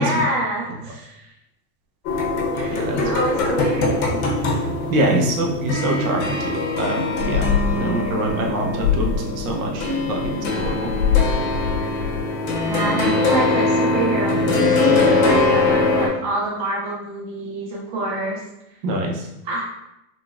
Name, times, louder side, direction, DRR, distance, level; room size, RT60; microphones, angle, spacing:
voice 1, 0.0-1.3 2.5-4.7 12.6-18.4 19.4-19.6, right 2 dB, 30° right, -4 dB, 0.4 m, -27 dB
sound 1, 2.0-16.1, left 3 dB, 75° left, 0.9 m, -21 dB
voice 2, 2.7-3.1 4.9-10.9 18.8-19.3, right 1 dB, 75° right, 1 dB, 0.8 m, -24 dB
3.8 x 2.3 x 2.4 m, 0.89 s
supercardioid pair, 175°, 42 cm